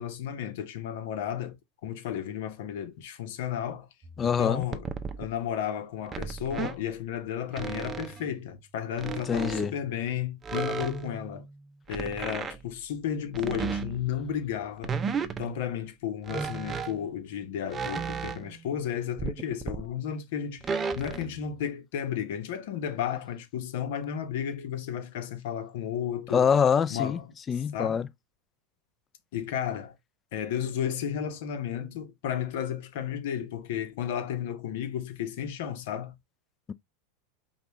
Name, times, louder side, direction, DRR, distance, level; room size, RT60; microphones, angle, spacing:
voice 1, 0.0-3.9 4.2-4.8 5.2-11.5 11.9-15.0 15.4-26.4 26.9-27.3 27.7-28.0 29.3-29.9 30.3-36.1, left 9 dB, 70° left, 1.0 m, -33 dB
sound 1, 4.0-5.3 6.1-6.8 7.5-8.4 9.0-10.0 10.4-12.7 13.3-14.3 14.8-15.6 16.3-17.1 17.7-18.7 19.2-19.9 20.6-21.6, right 5 dB, 25° right, 0.6 m, -35 dB
voice 2, 4.2-4.6 9.3-9.7 26.3-27.2 27.5-28.1 36.7-36.8, left 7 dB, 25° left, 0.4 m, -24 dB
5.2 x 2.4 x 3.0 m
hypercardioid pair, 110°, 0 cm